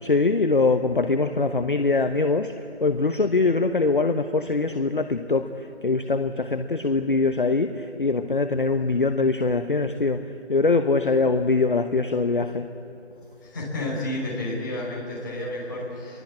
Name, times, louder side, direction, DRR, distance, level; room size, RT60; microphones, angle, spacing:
voice 1, 0.0-12.7, left 3 dB, 50° left, 8 dB, 0.9 m, -23 dB
voice 2, 13.4-16.2, left 1 dB, 20° left, -5 dB, 5.3 m, -31 dB
28.5 x 23.0 x 8.6 m, 2.9 s
figure-of-eight pair, 180°, 34 cm